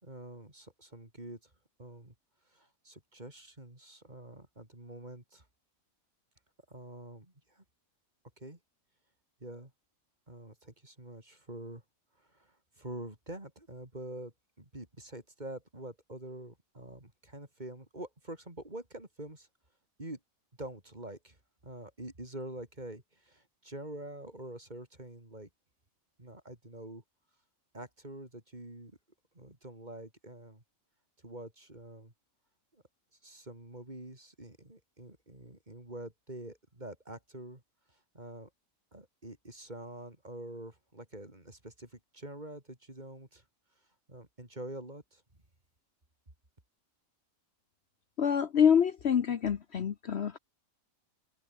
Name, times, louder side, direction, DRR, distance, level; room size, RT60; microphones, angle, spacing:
voice 1, 0.0-1.5 1.8-2.1 2.5-5.5 6.7-7.6 8.4-8.6 9.4-9.7 10.3-11.8 12.2-19.5 20.0-20.2 20.6-21.4 21.6-25.5 26.2-27.0 27.7-29.0 29.3-30.6 31.2-32.1 32.7-32.8 33.2-37.6 37.9-38.5 38.9-43.4 44.1-45.2, right 1 dB, 30° right, 4.5 m, -46 dB
voice 2, 48.2-50.4, left 8 dB, 55° left, 1.1 m, -26 dB
omnidirectional pair, 1.4 m